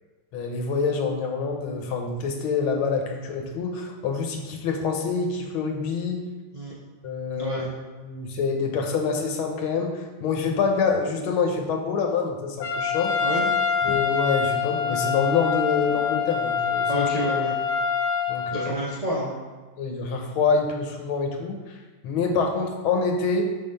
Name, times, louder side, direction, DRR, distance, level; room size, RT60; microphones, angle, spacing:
voice 1, 0.3-6.2 7.0-7.6 8.0-13.1 13.8-17.1 18.3-18.7 19.8-21.8 22.0-23.4, left 5 dB, 90° left, 2 dB, 1.6 m, -26 dB
voice 2, 7.4-7.7 13.2-13.4 16.9-17.5 18.5-19.3, equal, 70° right, -7 dB, 0.3 m, -28 dB
Trumpet, 12.6-18.7, left 7 dB, 65° left, 0.9 m, -25 dB
5.0 x 3.7 x 5.3 m, 1.3 s
omnidirectional pair, 2.2 m